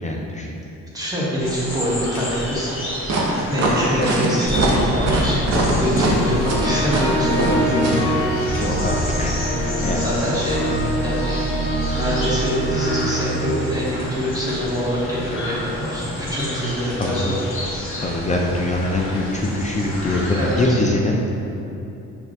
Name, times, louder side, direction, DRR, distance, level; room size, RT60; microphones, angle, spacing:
voice 1, 0.0-0.6 7.9-8.1 8.5-9.4 9.8-10.0 16.9-17.4 18.0-21.3, left 2 dB, 25° left, -1 dB, 0.3 m, -23 dB
voice 2, 0.9-2.7 3.5-8.7 10.0-10.6 11.0-11.4 11.9-17.3 20.3-20.8, equal, 10° right, -7 dB, 1.1 m, -25 dB
sound 1, 1.4-20.7, left 1 dB, 40° left, 1.4 m, -31 dB
sound 2, 3.1-8.0, right 2 dB, 60° right, 0.7 m, -22 dB
sound 3, 4.5-14.6, equal, 65° left, 1.0 m, -24 dB
6.0 x 2.4 x 2.6 m, 2.9 s
cardioid pair, 90°, 30 cm